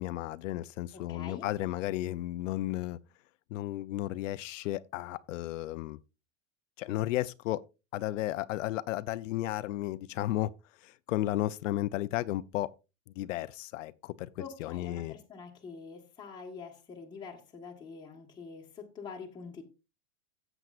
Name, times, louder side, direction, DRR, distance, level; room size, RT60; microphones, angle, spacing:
voice 1, 0.0-3.0 3.5-6.0 6.8-7.6 7.9-10.5 10.8-12.7 13.2-15.1, left 15 dB, 65° left, 0.6 m, -33 dB
voice 2, 0.9-1.5 14.4-19.6, left 5 dB, 10° left, 1.4 m, -45 dB
14.0 x 8.1 x 2.4 m
supercardioid pair, 150°, 40 cm